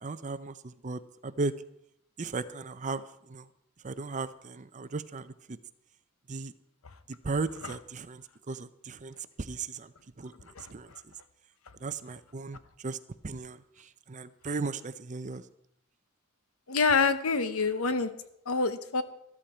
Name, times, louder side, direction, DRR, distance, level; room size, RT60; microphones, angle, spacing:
voice 1, 0.0-1.5 2.2-3.5 3.8-5.6 6.3-6.5 7.1-10.9 11.8-13.0 13.2-15.4, right 3 dB, 35° right, 13 dB, 0.6 m, -36 dB
voice 2, 16.7-18.1 18.5-19.0, left 4 dB, 80° left, 11 dB, 1.0 m, -26 dB
13.5 x 13.5 x 4.4 m, 0.77 s
head